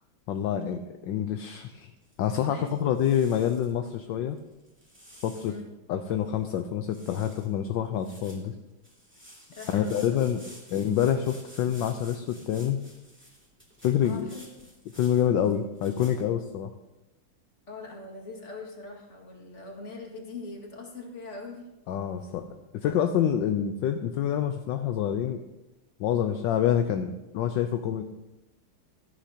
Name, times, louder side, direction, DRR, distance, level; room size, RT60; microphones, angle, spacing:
voice 1, 0.3-1.9 2.2-4.4 5.2-5.5 5.9-8.5 9.7-10.4 10.7-12.8 13.8-14.3 14.9-16.7 21.9-22.5 22.7-25.4 26.0-28.0, left 9 dB, 70° left, 7 dB, 1.2 m, -27 dB
sound 1, 1.8-2.5 2.9-3.7 4.4-5.6 6.1-6.2 6.4-6.6 6.9-7.5 7.9-16.2, equal, 5° right, 2.5 m, -52 dB
voice 2, 2.5-3.0 5.4-5.7 9.5-10.4 14.0-14.5 17.7-21.7, left 3 dB, 35° left, 0 dB, 2.2 m, -42 dB
16.0 x 13.5 x 2.9 m, 1.0 s
omnidirectional pair, 2.3 m